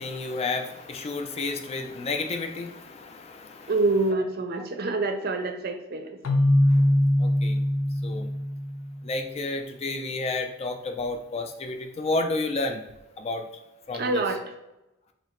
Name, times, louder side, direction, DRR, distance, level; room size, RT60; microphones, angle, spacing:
voice 1, 0.0-3.7 4.5-4.6 6.7-6.8 7.2-7.6 8.0-8.3 9.0-12.8 13.2-13.5 13.9-14.2, left 3 dB, 30° left, 6 dB, 0.3 m, -31 dB
voice 2, 3.7-6.1 13.9-14.5, right 3 dB, 50° right, 6 dB, 0.5 m, -26 dB
Keyboard (musical), 6.2-9.1, left 1 dB, 90° left, 0.5 m, -22 dB
2.9 x 2.8 x 4.3 m, 0.92 s
head